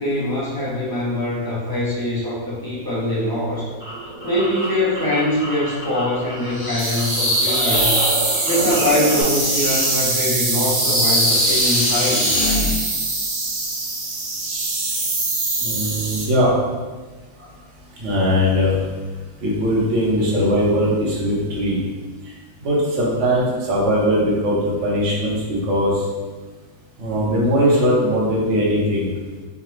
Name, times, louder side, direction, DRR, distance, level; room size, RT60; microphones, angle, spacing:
voice 1, 0.0-3.7 4.2-7.9 8.4-12.2 17.4-17.5, left 1 dB, 20° left, -8 dB, 0.7 m, -23 dB
sound 1, 3.3-6.7 6.9-9.2, equal, 30° right, 1.1 m, -30 dB
sound 2, 6.5-12.8, left 1 dB, 35° left, 1.0 m, -23 dB
sound 3, 6.8-16.3, right 3 dB, 70° right, 0.4 m, -23 dB
voice 2, 15.6-16.5 18.0-18.8 19.4-21.8 22.6-24.6 24.8-26.0 27.0-29.1, equal, 55° right, -5 dB, 1.2 m, -20 dB
4.9 x 2.2 x 3.1 m, 1.3 s
omnidirectional pair, 1.6 m